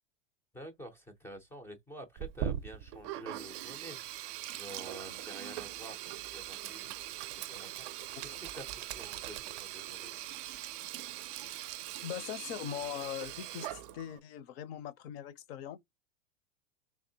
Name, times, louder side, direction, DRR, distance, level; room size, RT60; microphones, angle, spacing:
voice 1, 0.5-10.2, right 1 dB, 5° left, 0.5 m, -49 dB
Sink (filling or washing), 2.2-14.2, right 12 dB, 45° right, 0.5 m, -41 dB
voice 2, 11.4-11.7 12.0-15.8, left 10 dB, 50° left, 0.7 m, -41 dB
3.5 x 3.3 x 2.7 m
supercardioid pair, 145°, 39 cm